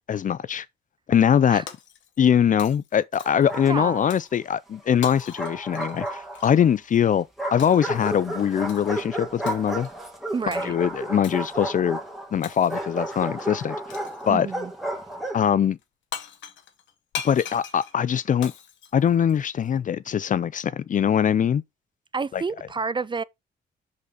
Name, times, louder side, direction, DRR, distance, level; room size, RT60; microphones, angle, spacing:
voice 1, 0.1-0.7 1.1-1.6 2.2-9.9 10.5-12.0 12.3-13.8 14.3-14.5 15.3-15.8 17.2-18.5 18.9-21.6 22.3-22.4, left 8 dB, 45° left, 0.4 m, -22 dB
Shatter, 1.7-2.3 2.6-3.5 4.1-4.4 5.0-6.6 7.6-7.9 8.7-9.0 9.5-9.9 10.5-10.7 11.2-11.5 12.4-13.0 13.9-14.3 15.8-15.9 16.1-19.7, left 8 dB, 80° left, 1.0 m, -40 dB
Bark, 3.2-4.2 5.1-6.7 7.4-15.5, right 1 dB, ahead, 1.9 m, -33 dB
voice 2, 3.7-4.1 10.3-10.8 14.3-14.7 22.1-23.2, right 4 dB, 25° right, 0.4 m, -29 dB
5.3 x 4.0 x 5.0 m
cardioid pair, 85°, 19 cm